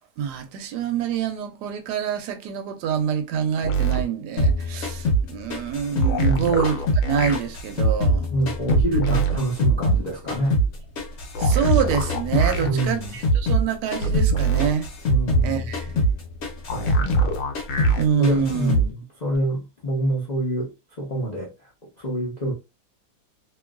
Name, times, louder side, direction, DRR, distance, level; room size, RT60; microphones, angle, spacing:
voice 1, 0.2-8.3 11.4-14.9 15.4-15.9 18.0-18.8, right 8 dB, 75° right, 1.1 m, -26 dB
sound 1, 3.6-4.0 6.0-7.4 8.7-9.4 11.4-12.7 14.0-14.7 16.7-18.0 19.4-19.5, right 3 dB, 85° left, 1.3 m, -26 dB
sound 2, 4.4-7.1 7.3-10.0 10.3-13.7 13.9-14.3 14.6-17.3 17.5-18.0 18.2-18.9, right 1 dB, 50° left, 1.1 m, -22 dB
voice 2, 8.3-10.6 12.6-13.1 15.1-15.7 16.7-17.3 18.2-18.9 19.2-20.7 21.0-21.5 22.0-22.5, right 1 dB, 65° left, 0.4 m, -26 dB
3.0 x 2.5 x 2.3 m
omnidirectional pair, 2.1 m